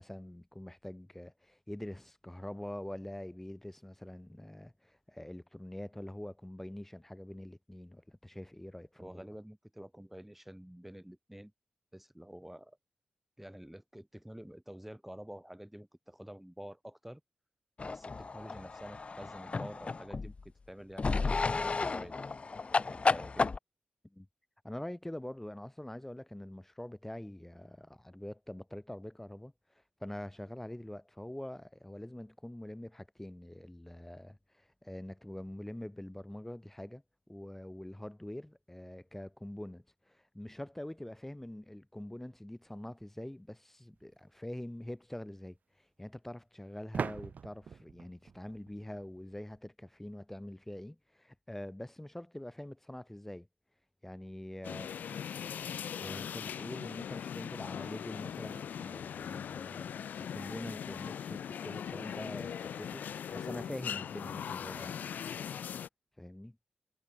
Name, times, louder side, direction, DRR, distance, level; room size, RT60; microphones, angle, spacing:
voice 1, 0.0-9.3 24.1-24.3 24.6-29.5 30.0-53.5 54.0-55.2 56.0-59.9 60.2-64.9 66.2-66.6, left 1 dB, 10° left, 3.2 m, -45 dB
voice 2, 9.0-11.5 11.9-12.8 13.4-17.2 17.8-22.3 22.8-23.5 63.4-63.5 64.6-65.1, equal, 5° right, 4.3 m, -49 dB
sound 1, 17.8-20.4 21.0-23.6, left 4 dB, 45° left, 1.7 m, -33 dB
sound 2, 43.9-44.0 46.9-49.6, right 6 dB, 70° right, 1.1 m, -41 dB
sound 3, 54.6-65.9, left 8 dB, 85° left, 0.5 m, -40 dB
cardioid pair, 65°, 3 cm